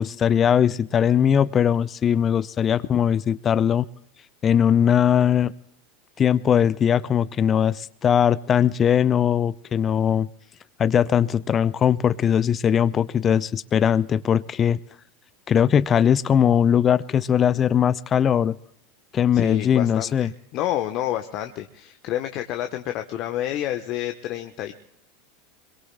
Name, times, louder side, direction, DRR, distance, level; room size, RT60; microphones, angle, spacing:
voice 1, 0.0-3.9 4.4-5.5 6.2-10.3 10.8-14.8 15.5-18.6 19.1-20.3, left 8 dB, 30° left, 18 dB, 0.6 m, -20 dB
voice 2, 19.3-24.7, left 12 dB, 50° left, 6 dB, 1.0 m, -29 dB
26.0 x 22.5 x 2.2 m, 0.75 s
figure-of-eight pair, 85°, 0 cm